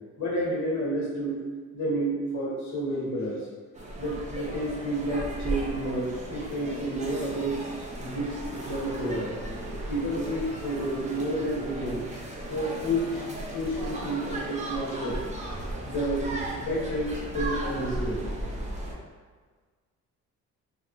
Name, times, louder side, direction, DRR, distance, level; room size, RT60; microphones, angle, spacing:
voice 1, 0.2-1.4 1.7-3.5 4.0-7.6 8.0-9.3 9.7-12.1 12.5-13.2 13.5-15.2 15.8-18.3, right 1 dB, 70° left, -5 dB, 1.2 m, -30 dB
sound 1, 3.7-18.9, right 1 dB, 25° right, 0.5 m, -36 dB
2.7 x 2.4 x 2.8 m, 1.5 s
cardioid pair, 125°, 30 cm